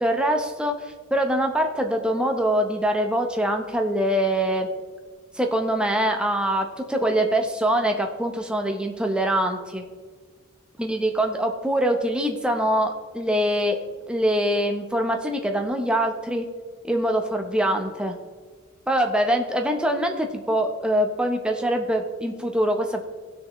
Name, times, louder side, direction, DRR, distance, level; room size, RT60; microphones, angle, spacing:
voice 1, 0.0-4.7 5.3-9.8 10.8-13.8 14.1-16.5 16.8-18.1 18.9-23.1, right 1 dB, 5° right, 3 dB, 0.8 m, -24 dB
16.5 x 6.5 x 3.1 m, 1.5 s
head